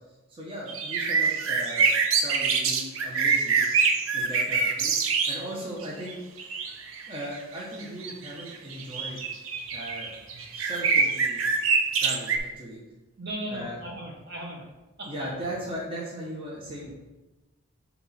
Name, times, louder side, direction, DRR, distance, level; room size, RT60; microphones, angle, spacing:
voice 1, 0.3-1.9 2.2-3.6 4.1-5.0 5.3-6.2 7.1-9.2 9.7-11.4 12.0-12.8 13.5-13.8 15.1-16.9, equal, 25° right, -5 dB, 0.9 m, -38 dB
sound 1, 0.7-5.4 5.8-12.4, right 5 dB, 70° right, 0.6 m, -25 dB
voice 2, 13.2-14.6 15.0-15.1, right 1 dB, 50° right, -1 dB, 1.2 m, -37 dB
7.7 x 3.0 x 4.2 m, 1.1 s
head